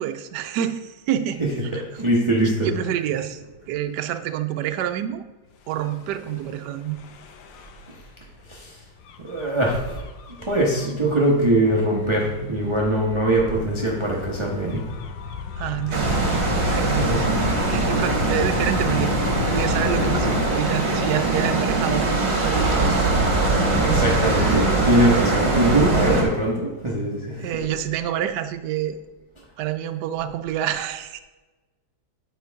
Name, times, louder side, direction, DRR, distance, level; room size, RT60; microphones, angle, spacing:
voice 1, 0.0-1.8 2.4-3.4 3.7-5.2 5.7-7.0 15.6-16.1 16.6-17.3 17.7-19.1 19.5-23.5 23.8-24.3 27.4-29.0 29.6-31.2, right 11 dB, 75° right, 8 dB, 1.1 m, -27 dB
voice 2, 1.4-2.7 8.5-8.8 9.2-10.0 10.5-14.8 16.9-17.4 23.8-27.5, right 1 dB, 20° right, -3 dB, 0.8 m, -22 dB
Gull seagull / Waves surf / Siren, 5.7-20.5, left 5 dB, 80° left, 1.5 m, -34 dB
sound 1, 15.9-26.2, right 2 dB, 45° right, 2.1 m, -22 dB
9.3 x 4.6 x 4.6 m, 1.2 s
omnidirectional pair, 2.0 m